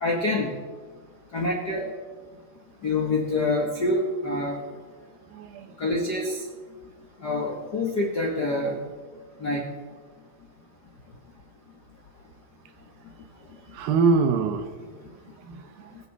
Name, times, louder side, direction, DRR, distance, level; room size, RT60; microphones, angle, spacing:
voice 1, 0.0-0.5 1.3-1.9 2.8-4.6 5.8-6.4 7.2-8.8 9.4-9.7, left 2 dB, 70° left, -1 dB, 0.9 m, -26 dB
voice 2, 5.3-5.7 13.7-16.0, right 4 dB, 80° right, 9 dB, 2.7 m, -26 dB
22.5 x 8.2 x 4.0 m, 1.5 s
omnidirectional pair, 4.2 m